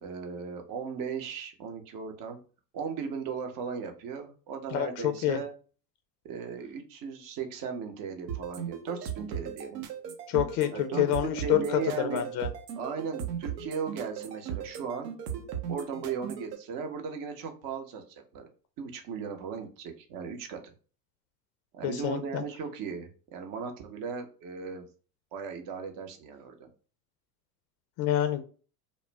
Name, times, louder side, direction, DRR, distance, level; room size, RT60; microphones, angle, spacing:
voice 1, 0.0-2.4 2.7-5.5 6.2-9.8 10.7-12.3 12.8-15.1 15.7-18.5 18.8-20.6 21.7-24.9 25.3-26.7, right 6 dB, 40° right, 5 dB, 0.8 m, -37 dB
voice 2, 4.7-5.4 10.3-12.5 21.8-22.4 28.0-28.4, left 12 dB, 40° left, 8 dB, 0.5 m, -27 dB
sound 1, 8.3-16.6, right 8 dB, 75° right, 0.8 m, -37 dB
2.4 x 2.0 x 3.3 m, 0.37 s
hypercardioid pair, 85°, 50 cm